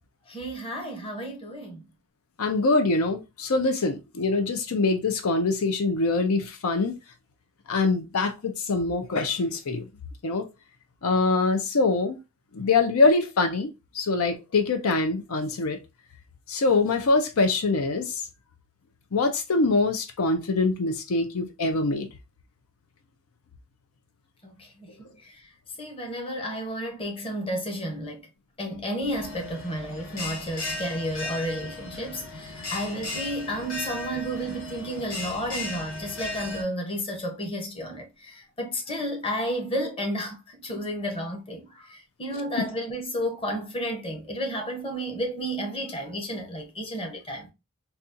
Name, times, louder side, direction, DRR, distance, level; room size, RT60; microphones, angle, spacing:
voice 1, 0.3-1.8 24.4-25.0 25.2-25.4 25.8-28.3 28.6-47.5, equal, 25° left, 0.9 m, -32 dB
voice 2, 2.4-6.9 7.7-9.8 10.2-10.5 11.0-12.2 12.5-13.7 13.9-15.8 16.5-18.1 19.1-22.1, left 3 dB, 85° left, 0.6 m, -24 dB
Bell, 29.1-36.6, left 2 dB, 70° left, 1.2 m, -36 dB
4.1 x 2.4 x 2.5 m
head